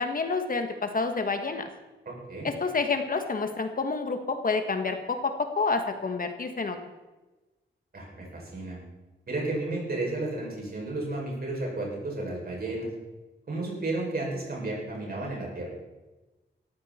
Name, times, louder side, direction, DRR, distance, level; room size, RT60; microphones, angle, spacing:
voice 1, 0.0-1.7 2.4-6.8, left 4 dB, 45° left, 6 dB, 1.5 m, -28 dB
voice 2, 2.0-2.5 7.9-8.8 9.3-12.9 13.5-15.7, right 2 dB, 50° right, -2 dB, 6.5 m, -32 dB
18.0 x 14.0 x 4.4 m, 1.1 s
wide cardioid pair, 145°, 19 cm